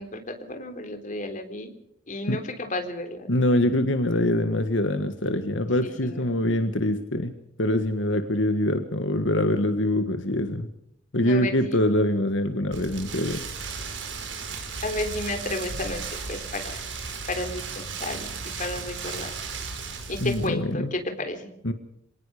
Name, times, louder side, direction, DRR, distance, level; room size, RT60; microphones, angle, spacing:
voice 1, 0.0-1.7 2.1-3.3 3.5-3.7 6.0-6.2 11.2-11.8 14.8-16.8 17.2-19.3 20.1-21.5, left 2 dB, 40° left, 6 dB, 3.8 m, -32 dB
voice 2, 3.3-7.3 7.6-10.7 11.1-13.4 20.2-20.9 21.6-21.7, left 1 dB, 80° left, 8 dB, 1.7 m, -24 dB
Rain, 12.7-20.5, right 4 dB, 75° right, 5.1 m, -35 dB
26.5 x 19.0 x 5.1 m, 0.80 s
head